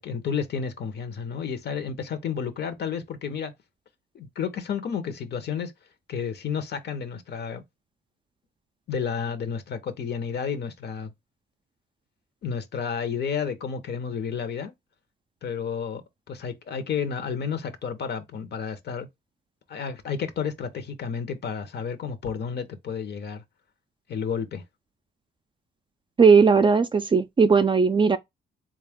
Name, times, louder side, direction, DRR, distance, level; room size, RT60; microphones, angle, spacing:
voice 1, 0.0-3.5 4.1-5.7 6.1-7.6 8.9-11.1 12.4-14.7 15.4-16.0 16.3-19.1 19.7-23.4 24.1-24.6, left 6 dB, 55° left, 0.8 m, -31 dB
voice 2, 26.2-28.2, right 5 dB, 25° right, 0.4 m, -18 dB
3.9 x 2.4 x 3.5 m
cardioid pair, 90°, 20 cm